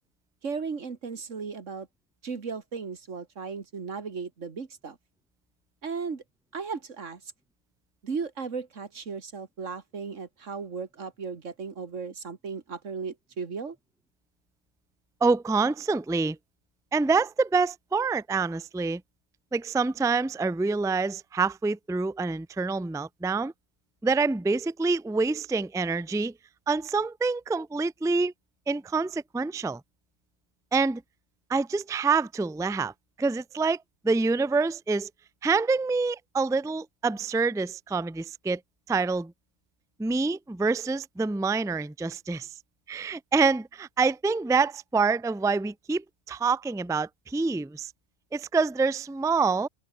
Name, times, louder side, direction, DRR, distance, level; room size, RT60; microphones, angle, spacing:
voice 1, 0.4-1.9 2.2-5.0 5.8-6.2 6.5-7.2 8.0-13.8, right 5 dB, 85° right, 2.2 m, -36 dB
voice 2, 15.2-16.4 16.9-19.0 19.5-23.5 24.0-26.3 26.7-28.3 28.7-29.8 30.7-31.0 31.5-32.9 33.2-33.8 34.0-35.1 35.4-38.6 38.9-39.3 40.0-42.5 42.9-47.9 48.3-49.7, right 4 dB, 5° right, 0.5 m, -26 dB
omnidirectional pair, 1.3 m